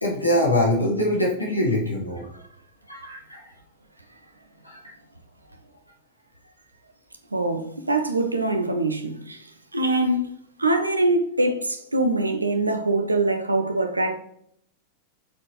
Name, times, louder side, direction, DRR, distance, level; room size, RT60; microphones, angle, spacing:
voice 1, 0.0-2.3 2.9-3.4 4.6-4.7, left 1 dB, 85° left, 1.8 m, -23 dB
voice 2, 7.3-9.4 9.7-10.3 10.6-14.2, right 2 dB, 80° right, 0.8 m, -23 dB
7.2 x 4.4 x 3.0 m
figure-of-eight pair, 90°, 0 cm